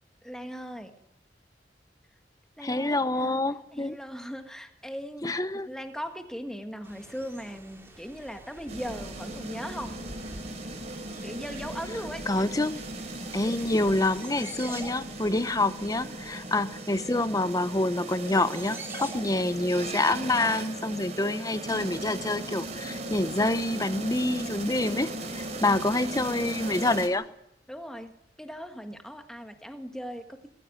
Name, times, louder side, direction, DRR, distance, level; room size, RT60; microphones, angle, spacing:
voice 1, 0.2-0.9 2.6-3.4 3.7-5.3 5.7-9.9 11.2-12.2 25.6-26.0 27.7-28.1 28.4-30.5, equal, 5° left, 6 dB, 1.6 m, -39 dB
voice 2, 2.6-4.0 5.2-5.7 12.3-12.8 13.3-27.3, left 2 dB, 20° left, 13 dB, 0.8 m, -27 dB
sound 1, 6.8-21.1, right 2 dB, 15° right, 2.9 m, -47 dB
sound 2, 8.7-27.1, right 2 dB, 40° right, 3.2 m, -38 dB
20.5 x 15.0 x 9.3 m, 0.79 s
head